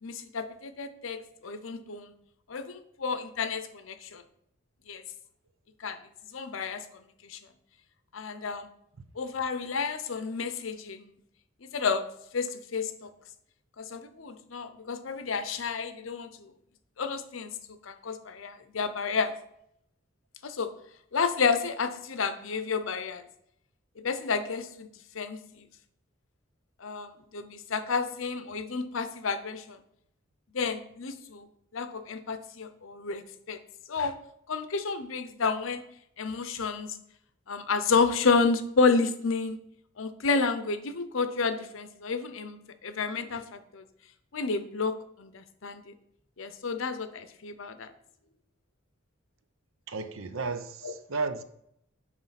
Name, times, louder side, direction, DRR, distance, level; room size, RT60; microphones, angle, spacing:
voice 1, 0.0-2.1 2.5-4.2 4.9-5.0 5.8-6.0 6.3-6.8 7.2-7.4 8.1-8.7 9.2-11.1 11.6-12.1 12.3-13.1 13.8-16.5 17.0-19.3 20.4-20.7 21.1-23.2 24.0-24.9 25.1-25.7 26.8-29.8 30.5-31.5 31.7-33.6 33.9-34.1 34.5-35.8 36.2-36.9 37.5-39.6 40.0-43.8 44.3-45.9 46.4-47.9 50.8-50.9, left 4 dB, 75° left, 0.7 m, -30 dB
voice 2, 49.9-51.4, right 4 dB, 75° right, 0.7 m, -33 dB
9.3 x 3.2 x 5.7 m
head